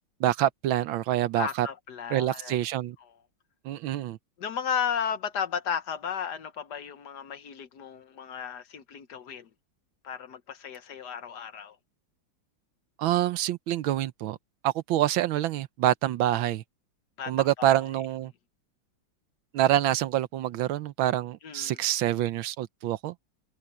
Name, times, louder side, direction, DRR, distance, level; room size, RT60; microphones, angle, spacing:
voice 1, 0.2-1.7 2.1-3.0 3.6-4.2 13.0-14.4 14.6-16.6 17.3-18.3 19.5-23.1, right 13 dB, 80° right, 1.5 m, -26 dB
voice 2, 1.4-2.6 3.0-3.1 4.4-9.5 10.0-11.8 17.2-17.7 21.4-21.8, left 7 dB, 60° left, 1.5 m, -34 dB
open air
omnidirectional pair, 2.2 m